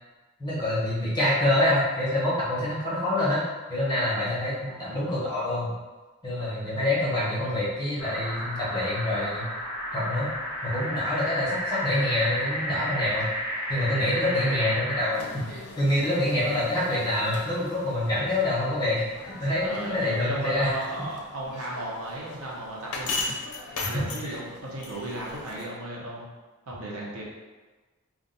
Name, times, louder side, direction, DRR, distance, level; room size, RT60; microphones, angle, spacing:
voice 1, 0.4-3.4 3.7-5.7 6.2-9.5 9.9-10.3 10.6-13.3 13.7-20.7 23.8-24.3, left 1 dB, 20° left, -9 dB, 1.1 m, -26 dB
voice 2, 4.7-5.2 14.2-14.8 19.6-26.3 26.7-27.2, right 1 dB, 85° right, -4 dB, 0.9 m, -36 dB
sound 1, 8.0-15.2, equal, 10° right, 1.2 m, -32 dB
sound 2, 15.1-25.7, left 3 dB, 90° left, 0.5 m, -39 dB
2.5 x 2.4 x 3.9 m, 1.3 s
head